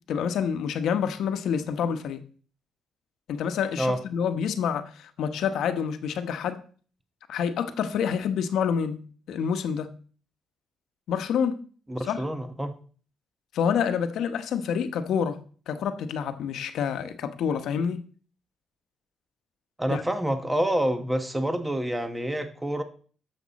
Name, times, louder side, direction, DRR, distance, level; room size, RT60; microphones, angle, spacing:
voice 1, 0.1-2.2 3.3-6.6 7.3-9.0 9.3-9.9 11.1-11.6 12.1-12.2 13.5-15.4 15.7-18.0 19.9-20.0, left 7 dB, 75° left, 1.0 m, -27 dB
voice 2, 11.9-12.7 19.8-22.8, right 1 dB, 10° right, 1.1 m, -27 dB
11.0 x 7.0 x 4.1 m
cardioid pair, 90°, 0 cm